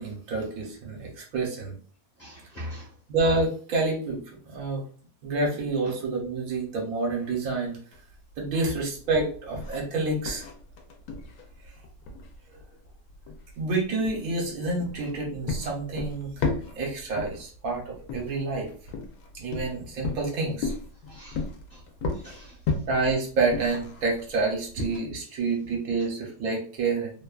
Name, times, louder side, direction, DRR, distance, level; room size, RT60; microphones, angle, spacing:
voice 1, 0.0-1.8 3.1-4.2 4.5-4.8 5.2-7.8 8.4-10.4 13.6-16.5 16.8-18.7 19.3-20.7 22.9-27.1, right 3 dB, 75° right, -1 dB, 1.3 m, -28 dB
voice 2, 2.2-2.9 5.8-5.9 21.1-21.8 22.1-22.8, equal, 30° left, -5 dB, 1.0 m, -43 dB
sound 1, 7.9-25.0, left 4 dB, 85° left, 1.1 m, -35 dB
2.9 x 2.2 x 2.3 m, 0.42 s
omnidirectional pair, 1.5 m